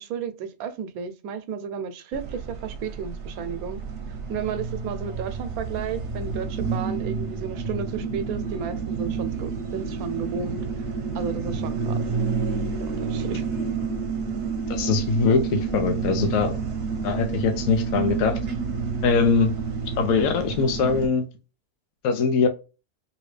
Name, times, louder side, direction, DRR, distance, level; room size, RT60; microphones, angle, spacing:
voice 1, 0.0-3.8 4.3-10.7 11.1-12.0 12.8-13.5, right 6 dB, 85° right, 1.0 m, -33 dB
sound 1, 2.1-21.1, right 5 dB, 55° right, 0.8 m, -29 dB
voice 2, 14.7-16.6 17.0-18.4 19.0-19.5 20.0-21.3 22.0-22.5, left 5 dB, 75° left, 1.0 m, -22 dB
2.8 x 2.8 x 3.1 m
omnidirectional pair, 1.5 m